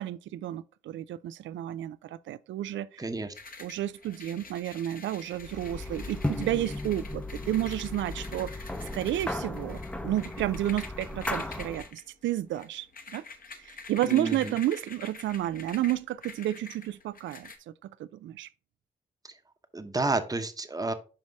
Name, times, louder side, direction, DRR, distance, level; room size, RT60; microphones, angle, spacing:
voice 1, 0.0-3.0 3.6-8.5 8.9-12.9 13.1-13.2 13.6-18.5, right 13 dB, 70° right, 0.4 m, -31 dB
voice 2, 3.0-3.3 14.1-14.6 19.2-19.3 19.7-20.9, right 3 dB, 20° right, 0.9 m, -30 dB
sound 1, 3.3-17.6, left 4 dB, 45° left, 1.0 m, -47 dB
sound 2, 5.4-11.9, left 1 dB, 5° left, 0.7 m, -36 dB
5.4 x 5.1 x 3.4 m
hypercardioid pair, 40°, 20 cm